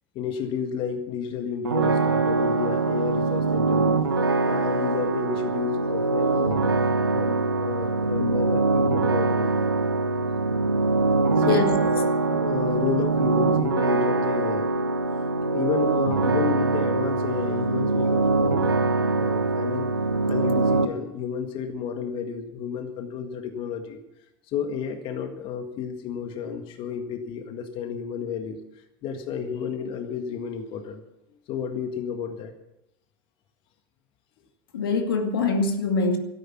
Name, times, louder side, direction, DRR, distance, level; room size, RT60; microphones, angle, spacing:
voice 1, 0.2-3.9 4.4-6.7 7.1-9.5 11.3-14.7 15.5-18.7 19.1-19.9 20.3-24.0 24.5-31.0 31.5-32.5, left 7 dB, 45° left, 1.8 m, -31 dB
sound 1, 1.6-20.9, right 3 dB, 90° right, 1.3 m, -23 dB
voice 2, 34.7-36.2, left 3 dB, 75° left, 2.3 m, -24 dB
16.5 x 13.5 x 5.9 m
hypercardioid pair, 85°, 12 cm